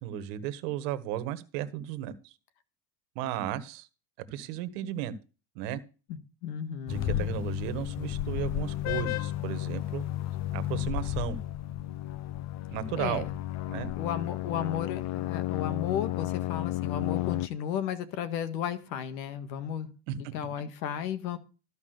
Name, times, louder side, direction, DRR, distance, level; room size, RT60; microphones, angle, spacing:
voice 1, 0.0-2.3 3.1-3.9 4.3-5.1 5.5-5.8 6.9-10.0 10.5-11.4 12.7-13.2 13.7-13.9 20.1-20.2, right 12 dB, 70° right, 1.5 m, -34 dB
voice 2, 6.4-7.3 13.0-13.3 14.0-19.9 20.2-21.4, left 9 dB, 85° left, 1.7 m, -34 dB
sound 1, 6.9-17.5, left 14 dB, 35° left, 0.5 m, -32 dB
13.0 x 5.2 x 6.6 m
supercardioid pair, 115°, 49 cm